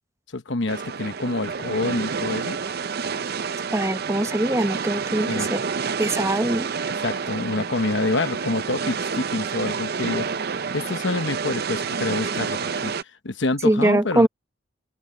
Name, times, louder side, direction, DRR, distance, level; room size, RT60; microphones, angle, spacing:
voice 1, 0.3-2.6 5.3-5.5 7.0-12.9 13.2-14.3, left 2 dB, 75° left, 1.1 m, -27 dB
sound 1, 0.7-13.0, right 5 dB, 55° right, 0.7 m, -29 dB
voice 2, 3.7-5.6 6.0-6.7 13.6-14.3, right 1 dB, 15° right, 1.1 m, -22 dB
open air
head